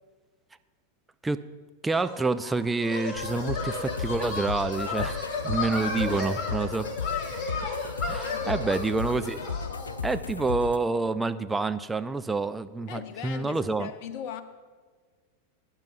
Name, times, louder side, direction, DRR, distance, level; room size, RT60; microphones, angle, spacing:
voice 1, 1.8-6.9 8.1-9.4 10.0-13.9, right 3 dB, 10° right, 10 dB, 0.5 m, -28 dB
sound 1, 1.9-10.0, left 3 dB, 25° left, 3.0 m, -34 dB
sound 2, 3.1-10.8, left 5 dB, 75° left, 0.4 m, -35 dB
voice 2, 5.9-6.3 8.3-8.6 12.9-14.4, left 8 dB, 45° left, 10 dB, 1.0 m, -38 dB
21.0 x 10.5 x 2.7 m, 1.5 s
figure-of-eight pair, 90°, 0 cm